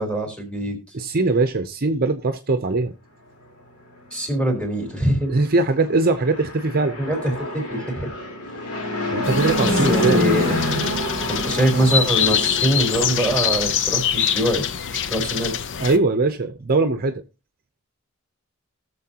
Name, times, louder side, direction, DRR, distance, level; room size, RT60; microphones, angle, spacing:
voice 1, 0.0-0.8 4.1-5.3 7.0-8.1 9.6-10.6 11.3-14.7 14.9-15.6, right 1 dB, 5° left, 3.8 m, -23 dB
voice 2, 0.9-2.9 5.3-7.0 9.1-10.2 15.8-17.2, right 3 dB, 45° right, 0.7 m, -21 dB
Fixed-wing aircraft airplane, 6.1-13.5, left 1 dB, 90° left, 3.8 m, -26 dB
sound 1, 9.2-16.0, left 8 dB, 60° left, 0.6 m, -24 dB
19.0 x 6.9 x 2.9 m
head